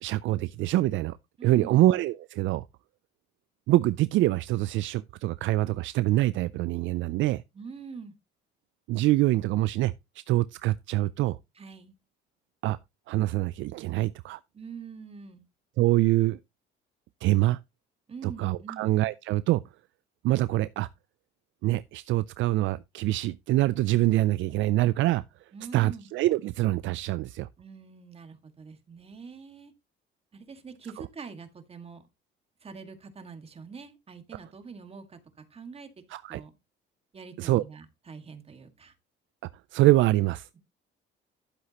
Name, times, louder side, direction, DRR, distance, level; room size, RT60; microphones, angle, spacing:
voice 1, 0.0-1.2 1.4-2.6 3.7-7.4 8.9-9.9 10.3-11.4 12.6-12.8 13.1-14.4 15.8-16.4 17.2-17.6 18.2-19.6 20.2-20.9 21.6-25.2 25.7-27.5 36.1-36.4 37.4-37.6 39.7-40.6, right 16 dB, 70° right, 0.4 m, -25 dB
voice 2, 1.4-1.9 7.5-8.1 11.6-11.9 14.5-15.4 18.1-18.9 25.5-26.1 27.6-29.7 30.3-32.0 32.6-35.2 35.5-35.9 36.3-36.6 37.1-38.9, right 5 dB, 30° right, 1.8 m, -44 dB
11.5 x 7.9 x 2.9 m
cardioid pair, 120°, 21 cm